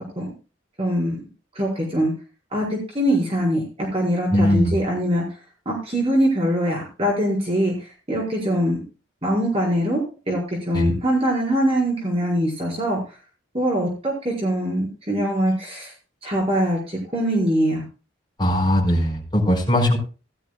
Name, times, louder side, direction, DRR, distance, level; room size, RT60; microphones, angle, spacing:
voice 1, 0.8-1.2 1.5-2.1 2.5-5.2 5.6-8.8 9.2-13.0 13.5-15.9 16.2-17.8, equal, 30° right, -3 dB, 4.9 m, -23 dB
voice 2, 4.3-4.7 10.7-10.9 18.4-20.0, equal, 20° left, -3 dB, 4.5 m, -19 dB
16.5 x 13.0 x 2.2 m, 0.32 s
head